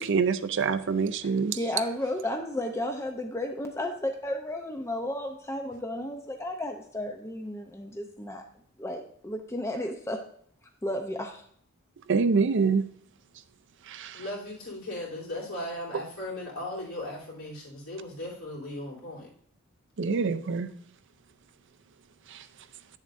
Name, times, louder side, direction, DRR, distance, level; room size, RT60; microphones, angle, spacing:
voice 1, 0.0-1.6 12.1-12.8 13.9-14.2 20.0-20.7 22.3-22.4, right 5 dB, 55° right, 0.5 m, -26 dB
voice 2, 1.5-8.4 8.8-10.2 10.8-11.4, left 1 dB, 15° left, 0.5 m, -33 dB
voice 3, 14.1-19.3, left 1 dB, 75° left, 3.1 m, -37 dB
9.5 x 7.2 x 2.5 m
head